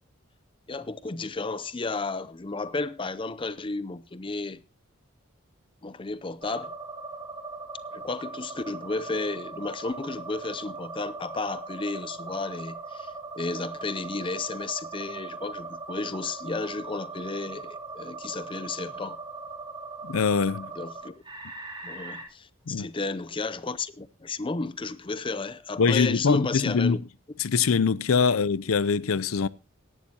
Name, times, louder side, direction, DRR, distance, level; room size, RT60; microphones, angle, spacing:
voice 1, 0.7-4.6 5.8-6.8 7.9-19.2 20.7-21.1 21.8-27.0, left 3 dB, 25° left, 0.6 m, -33 dB
sound 1, 6.4-22.2, right 3 dB, 25° right, 3.0 m, -40 dB
voice 2, 20.0-20.7 22.7-22.9 25.8-27.0 27.4-29.5, left 5 dB, 85° left, 0.6 m, -23 dB
17.0 x 11.5 x 2.8 m
head